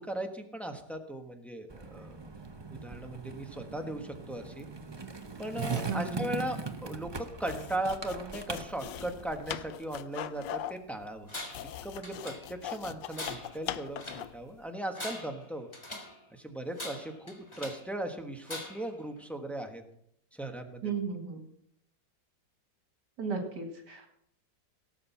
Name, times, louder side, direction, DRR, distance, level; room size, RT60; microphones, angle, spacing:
voice 1, 0.0-2.2 2.7-4.7 5.4-11.3 11.8-15.7 16.3-19.8 20.3-20.9, right 1 dB, ahead, 4 dB, 1.0 m, -38 dB
Skateboard, 1.7-9.7, right 4 dB, 45° right, 0.3 m, -40 dB
voice 2, 5.9-6.3 20.8-21.4 23.2-24.1, right 5 dB, 65° right, 3 dB, 2.4 m, -35 dB
sound 1, 7.4-14.4, left 11 dB, 75° left, 1.3 m, -41 dB
Tools, 11.3-11.7 12.0-12.7 13.1-14.3 14.8-16.2 16.7-17.9 18.4-19.0, left 1 dB, 15° left, 1.5 m, -42 dB
17.5 x 7.7 x 5.7 m, 0.72 s
omnidirectional pair, 2.0 m